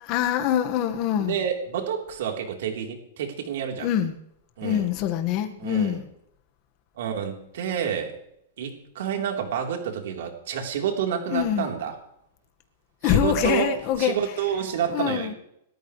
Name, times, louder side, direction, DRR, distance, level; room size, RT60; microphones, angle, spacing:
voice 1, 0.0-1.4 3.8-4.2 4.6-6.1 11.3-11.7 13.0-14.2 14.9-15.3, left 10 dB, 35° left, 1.7 m, -24 dB
voice 2, 1.3-3.9 4.6-4.9 5.6-6.0 7.0-8.1 8.6-11.9 13.0-13.7 14.0-15.3, right 8 dB, 65° right, 3.9 m, -29 dB
28.0 x 13.5 x 3.4 m
supercardioid pair, 160°, 0 cm